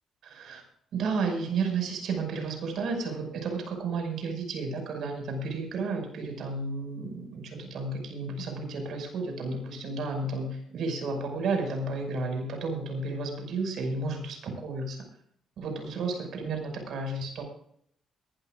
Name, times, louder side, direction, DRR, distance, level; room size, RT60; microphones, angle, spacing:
voice 1, 0.2-0.6 0.9-15.0 15.6-17.4, right 3 dB, 70° right, 3 dB, 5.9 m, -32 dB
22.5 x 13.0 x 2.6 m, 0.67 s
cardioid pair, 90°, 0 cm